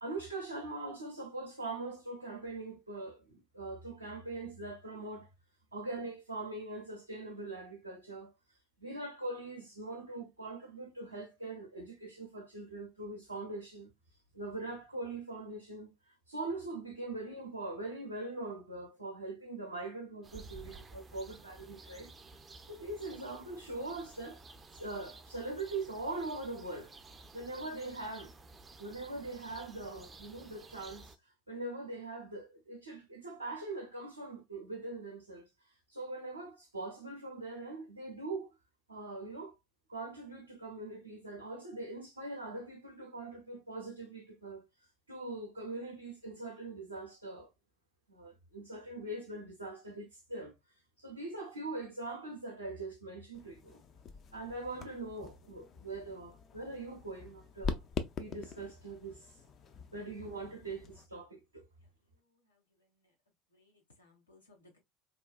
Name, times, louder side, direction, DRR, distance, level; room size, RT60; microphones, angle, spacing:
voice 1, 0.0-5.3 5.7-8.3 8.8-13.9 14.3-22.1 22.7-24.4 24.7-26.9 27.3-28.3 28.8-31.2 31.5-38.5 38.9-39.6 39.9-44.6 45.1-47.5 48.1-50.5 51.0-53.8 54.3-57.8 58.2-59.4 59.9-61.6, right 2 dB, 85° right, 0.5 m, -42 dB
sound 1, 20.2-31.2, right 3 dB, 25° right, 0.4 m, -53 dB
sound 2, 53.3-61.1, left 5 dB, 40° left, 0.4 m, -44 dB
voice 2, 61.8-63.1 63.5-64.8, left 2 dB, 85° left, 0.9 m, -66 dB
3.0 x 2.2 x 2.2 m
figure-of-eight pair, 70°, 0 cm